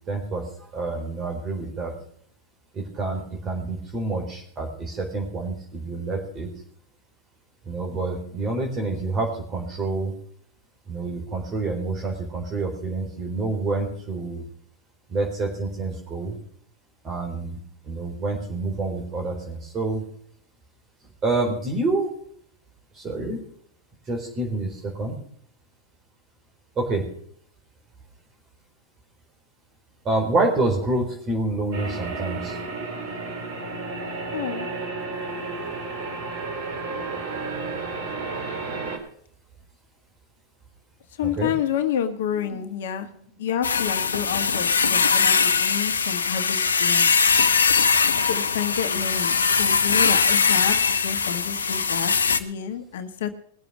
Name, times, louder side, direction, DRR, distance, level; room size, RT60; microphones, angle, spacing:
voice 1, 0.1-1.9 2.7-6.5 7.7-10.1 10.9-14.4 15.1-16.3 17.0-17.6 17.8-20.0 21.2-22.1 22.9-23.4 24.1-25.1 26.8-27.0 30.0-32.6 41.2-41.5 42.3-42.6, right 2 dB, 30° right, 0 dB, 4.1 m, -27 dB
sound 1, 31.7-39.0, right 3 dB, 60° right, 3.3 m, -32 dB
voice 2, 34.3-34.7 41.2-43.1 43.4-47.1 48.1-53.3, left 9 dB, 65° left, 9 dB, 1.3 m, -29 dB
sound 2, 43.6-52.4, left 5 dB, 85° left, 0.8 m, -21 dB
20.5 x 7.0 x 6.3 m, 0.62 s
hypercardioid pair, 95°, 0 cm